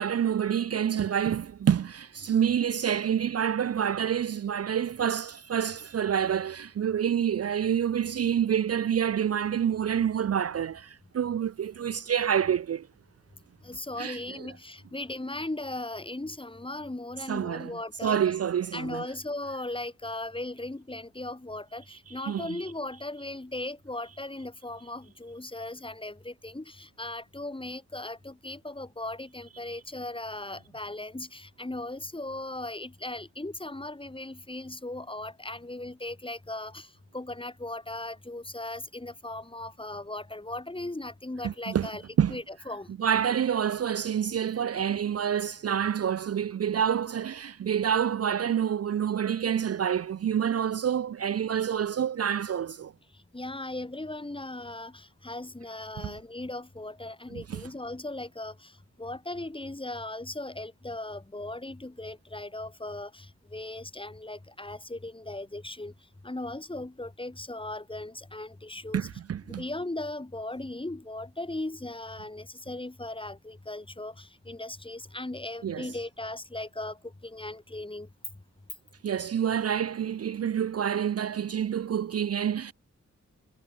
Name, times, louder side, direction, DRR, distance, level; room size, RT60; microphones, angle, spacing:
voice 1, 0.0-12.9 14.0-14.2 17.3-17.7 18.0-19.0 22.1-22.6 41.4-41.9 42.2-42.4 43.0-52.9 56.0-56.2 57.3-57.6 68.9-69.6 75.6-75.9 79.0-82.7, right 8 dB, 55° right, 0.4 m, -27 dB
voice 2, 13.6-18.2 18.7-42.0 42.3-42.9 53.3-58.7 59.0-65.9 66.2-69.1 69.5-78.1, left 2 dB, 20° left, 1.7 m, -38 dB
wide cardioid pair, 90°, 29 cm